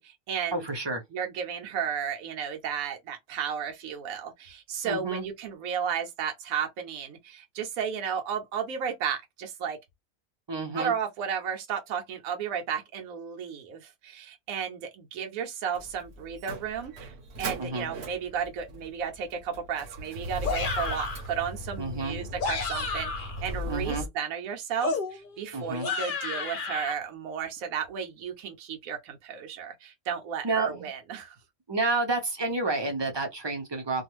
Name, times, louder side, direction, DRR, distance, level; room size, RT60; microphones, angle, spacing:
voice 1, 0.0-0.7 1.1-9.8 10.8-31.4, right 7 dB, 80° right, 1.1 m, -33 dB
voice 2, 0.5-1.0 4.8-5.2 10.5-10.9 17.6-17.9 21.8-22.2 23.6-24.1 25.5-25.9 30.4-30.9 31.7-34.0, right 3 dB, 30° right, 0.5 m, -30 dB
Motor vehicle (road), 15.7-24.1, equal, 55° right, 0.9 m, -39 dB
sound 1, 20.4-21.3 22.2-23.4 24.8-26.9, left 4 dB, 50° left, 0.7 m, -32 dB
2.5 x 2.3 x 3.0 m
omnidirectional pair, 1.5 m